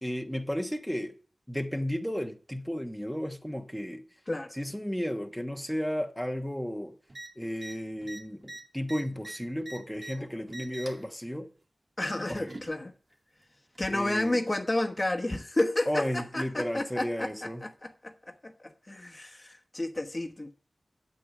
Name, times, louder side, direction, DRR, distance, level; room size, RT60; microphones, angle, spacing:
voice 1, 0.0-1.1 1.5-4.0 4.5-6.9 7.4-11.5 12.3-12.5 13.9-14.4 15.9-17.6, equal, ahead, 1.1 m, -33 dB
sound 1, 7.1-7.3 7.6-7.7 8.0-10.1 10.5-11.0 12.0-12.7 13.8-13.9, right 2 dB, 55° right, 2.3 m, -43 dB
voice 2, 12.0-12.9 13.8-20.5, left 1 dB, 30° left, 1.2 m, -31 dB
8.6 x 7.9 x 7.1 m
wide cardioid pair, 60°, 0 cm